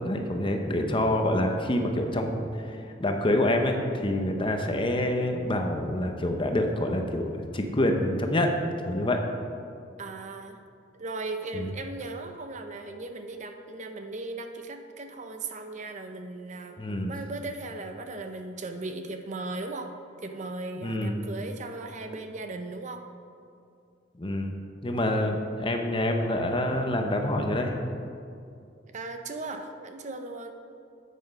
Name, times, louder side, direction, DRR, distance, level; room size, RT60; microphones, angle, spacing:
voice 1, 0.0-8.6 8.8-9.2 11.5-11.7 16.8-17.1 20.8-21.1 24.2-24.5 24.8-27.7, left 1 dB, 25° left, 4 dB, 0.8 m, -27 dB
voice 2, 10.0-10.6 10.9-16.8 17.0-19.9 20.2-23.0 28.9-30.5, right 2 dB, 40° right, 6 dB, 0.6 m, -37 dB
9.2 x 8.4 x 5.4 m, 2.4 s
head